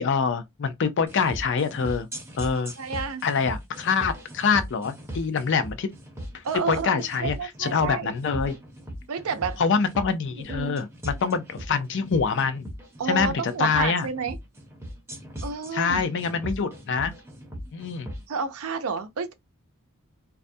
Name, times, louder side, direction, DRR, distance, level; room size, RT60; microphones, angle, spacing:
voice 1, 0.0-2.1 2.4-2.7 3.2-5.9 6.3-8.6 9.6-12.7 13.0-14.1 15.7-17.1 17.7-18.1, left 5 dB, 60° left, 0.5 m, -25 dB
sound 1, 1.1-18.2, equal, 15° right, 0.6 m, -38 dB
voice 2, 2.8-3.2 6.4-8.1 9.1-9.6 10.3-10.8 13.0-14.4 15.4-16.0 18.3-19.3, right 5 dB, 80° right, 0.5 m, -30 dB
2.3 x 2.1 x 2.6 m
head